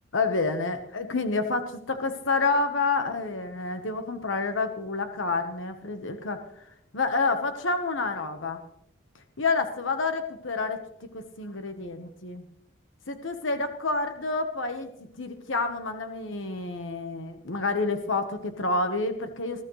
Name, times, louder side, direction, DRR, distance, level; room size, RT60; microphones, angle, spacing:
voice 1, 0.1-6.4 6.9-8.6 9.4-10.8 11.1-12.4 13.1-14.9 15.2-19.6, left 3 dB, 75° left, 7 dB, 1.2 m, -28 dB
20.5 x 14.0 x 3.2 m, 0.77 s
head